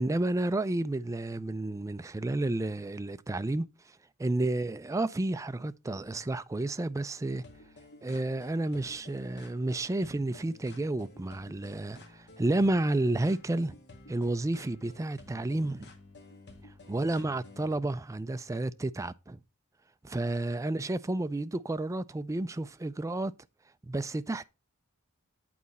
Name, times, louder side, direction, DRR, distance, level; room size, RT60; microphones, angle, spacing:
voice 1, 0.0-3.7 4.2-7.4 8.0-13.7 14.1-15.9 16.9-19.4 20.0-23.3 23.8-24.4, right 2 dB, 15° right, 0.3 m, -31 dB
sound 1, 7.4-17.8, left 2 dB, 50° left, 1.5 m, -53 dB
8.6 x 4.1 x 5.3 m
head